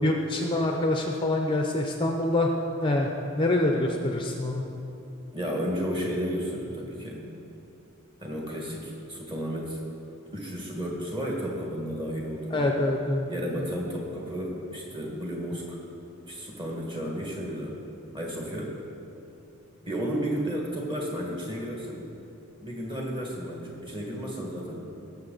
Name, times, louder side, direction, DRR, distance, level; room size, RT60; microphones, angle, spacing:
voice 1, 0.0-2.5 2.8-3.1 3.4-4.6 12.5-13.3, left 1 dB, 25° left, 2 dB, 0.6 m, -25 dB
voice 2, 5.3-7.3 8.2-9.8 10.3-12.7 13.3-15.8 16.3-17.7 18.1-18.8 19.8-22.1 22.6-24.9, equal, 20° right, -2 dB, 1.7 m, -32 dB
17.5 x 7.3 x 4.0 m, 2.8 s
head